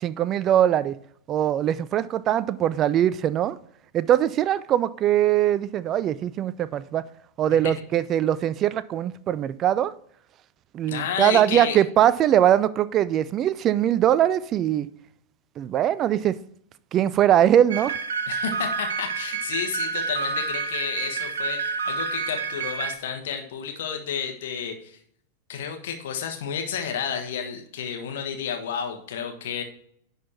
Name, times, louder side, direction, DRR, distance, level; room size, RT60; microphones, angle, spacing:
voice 1, 0.0-0.9 1.3-3.6 3.9-7.0 7.4-9.9 10.7-14.9 15.6-16.4 16.9-17.9, right 11 dB, 30° right, 0.3 m, -21 dB
voice 2, 10.9-11.8 18.3-25.0 25.5-29.6, left 7 dB, 55° left, 1.4 m, -31 dB
sound 1, 17.7-23.0, right 5 dB, 65° right, 0.7 m, -29 dB
11.0 x 4.1 x 4.3 m
figure-of-eight pair, 90°, 0 cm